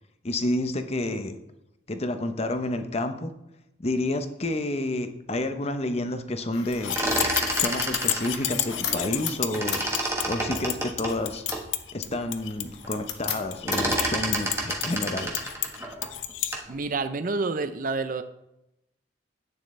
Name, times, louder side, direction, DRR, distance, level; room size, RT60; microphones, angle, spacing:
voice 1, 0.2-1.4 1.9-3.3 3.8-7.0 7.6-9.8 10.3-11.4 11.9-15.4, left 1 dB, 30° left, 8 dB, 0.8 m, -29 dB
sound 1, 6.5-14.0, left 8 dB, 60° left, 1.1 m, -39 dB
sound 2, 6.7-16.5, left 12 dB, 80° left, 0.6 m, -31 dB
sound 3, 6.7-9.3 9.5-11.7 12.2-12.3 12.5-12.9 13.2-16.7, right 1 dB, 15° right, 1.3 m, -29 dB
voice 2, 16.7-18.2, right 3 dB, 45° right, 10 dB, 0.5 m, -28 dB
10.5 x 9.2 x 3.2 m, 0.85 s
head